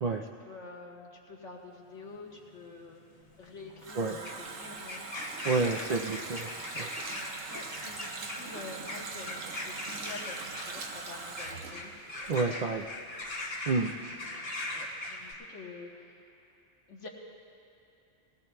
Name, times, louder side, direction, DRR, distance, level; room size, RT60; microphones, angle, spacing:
voice 1, 0.4-3.0 3.4-5.1 5.4-6.1 7.1-11.9 13.7-16.3 16.9-17.1, left 3 dB, 75° left, -2 dB, 1.6 m, -48 dB
sound 1, 1.9-15.3, left 1 dB, 55° left, 1.7 m, -41 dB
Water tap faucet, 3.3-13.0 13.2-13.3, right 4 dB, 90° right, 1.3 m, -42 dB
voice 2, 5.4-6.9 12.3-12.9 13.7-13.9, right 3 dB, 65° right, 2 dB, 0.4 m, -30 dB
20.5 x 17.0 x 2.2 m, 2.8 s
omnidirectional pair, 1.3 m